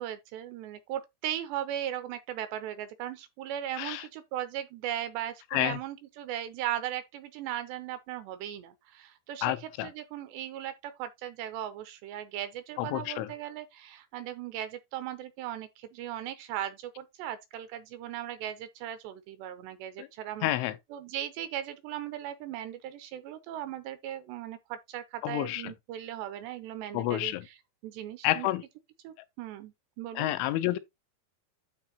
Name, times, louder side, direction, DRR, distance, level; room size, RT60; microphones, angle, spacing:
voice 1, 0.0-20.5 20.9-27.3 27.8-28.5 29.0-30.3, right 11 dB, 80° right, 2.6 m, -38 dB
voice 2, 9.4-9.9 12.8-13.3 20.0-20.1 20.4-20.8 25.2-25.7 26.9-27.5 28.2-28.6 30.1-30.8, left 16 dB, 85° left, 3.1 m, -29 dB
12.0 x 4.1 x 2.9 m
omnidirectional pair, 5.3 m